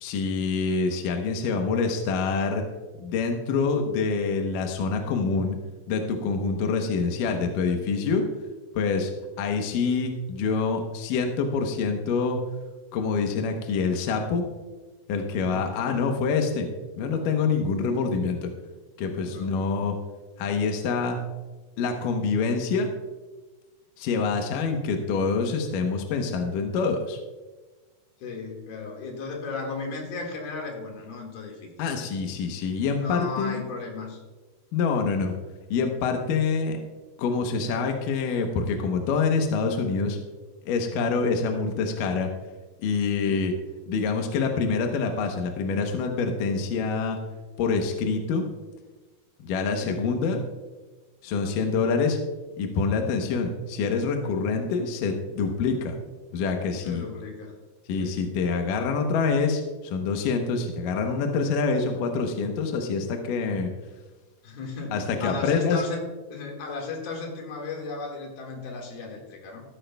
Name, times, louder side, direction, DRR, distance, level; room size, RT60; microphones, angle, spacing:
voice 1, 0.0-2.6 3.0-5.6 5.9-8.3 8.7-9.1 9.4-12.4 12.9-14.4 15.1-16.7 17.0-18.5 19.0-20.0 20.4-21.2 21.8-22.9 24.0-27.2 31.8-33.6 34.7-35.3 35.7-36.8 37.2-40.2 40.6-42.3 42.8-43.5 43.9-47.2 47.6-48.4 49.4-50.4 51.2-52.2 52.6-56.0 56.3-57.0 57.9-63.7 64.9-65.8, left 4 dB, 75° left, 4 dB, 2.5 m, -26 dB
voice 2, 19.3-19.8 28.2-31.9 32.9-34.2 43.2-43.5 56.8-57.6 58.0-58.2 64.4-66.0 66.3-69.6, left 4 dB, 90° left, 0 dB, 3.8 m, -35 dB
14.0 x 13.0 x 2.3 m, 1.2 s
omnidirectional pair, 4.1 m